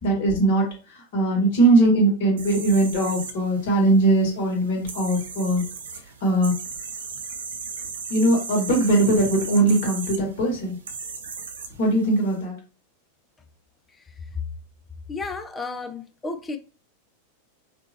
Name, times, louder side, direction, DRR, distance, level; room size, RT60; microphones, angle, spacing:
voice 1, 0.0-5.6 6.2-6.5 8.1-10.8 11.8-12.6, right 2 dB, 50° left, 2.0 m, -20 dB
sound 1, 2.4-12.4, right 5 dB, 65° right, 0.7 m, -37 dB
voice 2, 15.1-16.6, left 3 dB, 15° left, 0.5 m, -32 dB
5.2 x 2.8 x 2.9 m
figure-of-eight pair, 90°, 0 cm